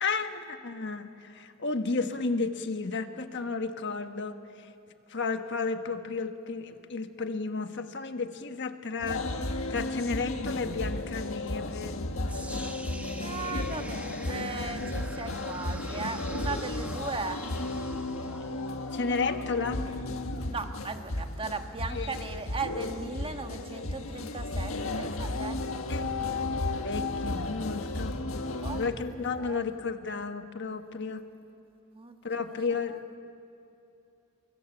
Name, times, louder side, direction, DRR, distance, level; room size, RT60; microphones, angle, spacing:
voice 1, 0.0-4.4 5.1-9.2 9.7-12.0 18.9-19.8 21.9-22.4 25.9-26.1 26.8-28.2 28.7-31.2 32.2-33.0, left 4 dB, 60° left, 7 dB, 1.3 m, -32 dB
sound 1, 9.0-28.9, left 2 dB, 80° left, 1.5 m, -34 dB
sound 2, 12.3-20.3, right 1 dB, 5° right, 1.0 m, -47 dB
voice 2, 13.2-14.0 14.3-17.4 18.1-18.2 20.5-26.5 28.6-29.7 31.9-32.6 32.9-33.0, right 4 dB, 25° right, 6 dB, 1.4 m, -38 dB
24.0 x 23.5 x 7.9 m, 2.9 s
head